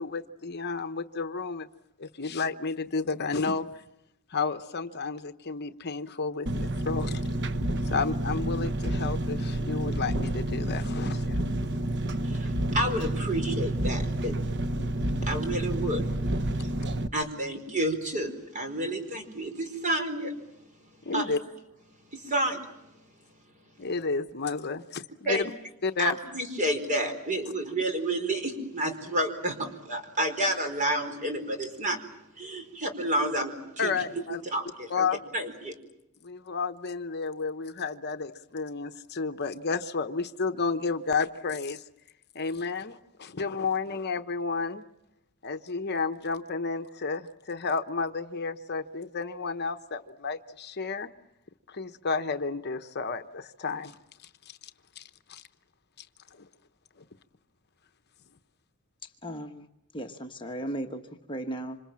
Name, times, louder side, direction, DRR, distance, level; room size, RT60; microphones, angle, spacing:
voice 1, 0.0-1.7 2.0-3.8 4.3-7.2 7.8-11.4 21.0-21.4 23.8-25.5 25.8-26.2 33.8-34.4 34.9-35.2 36.2-41.8 42.3-44.8 45.4-51.1 51.7-53.9 54.2-54.6 55.0-55.1 55.3-55.4 56.0-56.1 56.3-56.5 57.0-57.1, left 4 dB, 50° left, 9 dB, 1.0 m, -31 dB
Engine, 6.5-17.1, right 1 dB, 50° right, 1.0 m, -29 dB
voice 2, 12.2-14.3 15.3-16.0 16.6-16.7 17.1-20.3 21.1-21.3 22.1-22.6 25.2-25.5 26.0-32.0 32.4-33.9 34.5-35.1 35.3-35.7, right 1 dB, 35° right, 6 dB, 4.6 m, -30 dB
voice 3, 59.2-59.7 59.9-61.0 61.3-61.8, right 1 dB, 20° left, 4 dB, 1.2 m, -35 dB
27.0 x 26.5 x 7.5 m, 0.86 s
head